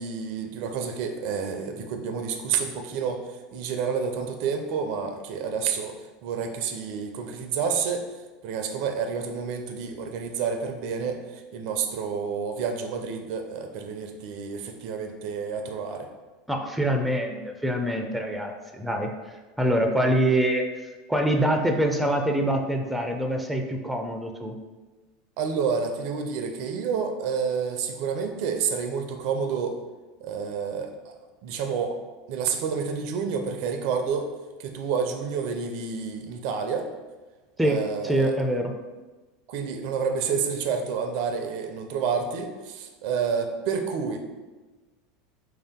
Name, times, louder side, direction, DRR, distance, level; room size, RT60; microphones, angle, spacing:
voice 1, 0.0-3.2 3.5-6.0 6.2-8.1 8.4-16.1 25.4-29.7 30.2-31.2 31.4-32.0 32.3-34.3 34.6-36.9 37.6-38.4 39.5-44.2, right 6 dB, 65° right, 5 dB, 0.4 m, -29 dB
voice 2, 16.5-20.6 21.1-24.6 37.6-38.7, right 1 dB, 5° right, 4 dB, 0.4 m, -25 dB
3.4 x 2.7 x 3.5 m, 1.2 s
hypercardioid pair, 90°, 0 cm